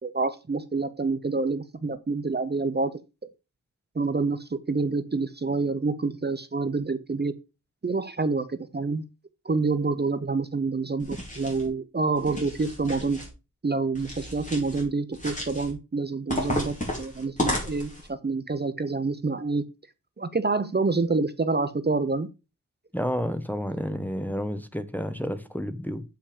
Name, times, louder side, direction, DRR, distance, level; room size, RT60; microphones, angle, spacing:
voice 1, 0.0-2.9 3.9-7.3 7.8-9.0 9.4-13.3 13.6-19.6 20.2-22.3, right 3 dB, 30° right, 0.8 m, -27 dB
sound 1, 11.0-11.7 12.2-13.3 13.9-14.8 15.1-15.7 16.3-18.1, left 1 dB, 25° left, 4.5 m, -33 dB
voice 2, 22.9-26.0, equal, 5° left, 0.9 m, -30 dB
8.3 x 5.9 x 5.0 m
wide cardioid pair, 105°, 31 cm